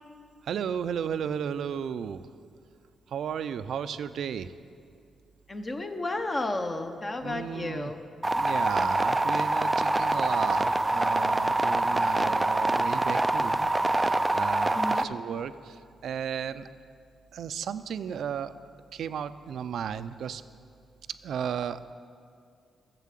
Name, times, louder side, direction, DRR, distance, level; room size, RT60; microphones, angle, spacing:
voice 1, 0.4-2.3 3.1-4.5 7.2-7.9 8.3-16.7 17.3-18.5 18.9-20.4 21.2-21.8, right 8 dB, 70° right, 13 dB, 0.4 m, -34 dB
voice 2, 5.5-8.0 14.7-15.0, left 2 dB, 25° left, 6 dB, 0.7 m, -32 dB
sound 1, 8.2-15.0, right 2 dB, 10° right, 0.4 m, -25 dB
13.0 x 7.5 x 7.5 m, 2.3 s
cardioid pair, 135°, 0 cm